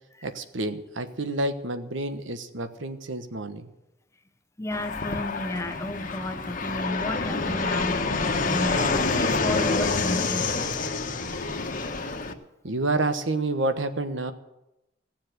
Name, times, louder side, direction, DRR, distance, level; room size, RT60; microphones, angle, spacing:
voice 1, 0.2-3.7 12.6-14.3, right 2 dB, 90° right, 9 dB, 1.2 m, -29 dB
voice 2, 4.6-10.5, left 1 dB, 15° left, 10 dB, 0.7 m, -33 dB
Fixed-wing aircraft airplane, 4.7-12.3, left 3 dB, 45° left, 1.3 m, -27 dB
17.0 x 7.4 x 9.4 m, 0.92 s
head